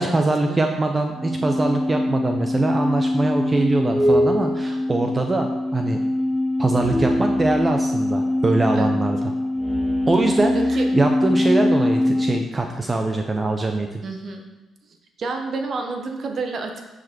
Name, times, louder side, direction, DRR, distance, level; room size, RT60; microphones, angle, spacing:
voice 1, 0.0-6.0 6.6-9.2 10.1-14.0, right 2 dB, 25° right, 4 dB, 0.7 m, -22 dB
sound 1, 1.2-12.4, left 1 dB, 5° left, 3.1 m, -22 dB
voice 2, 10.5-10.9 14.0-14.4 15.2-16.8, right 3 dB, 55° right, 4 dB, 1.1 m, -29 dB
9.6 x 5.1 x 4.4 m, 1.1 s
cardioid pair, 90°, 0 cm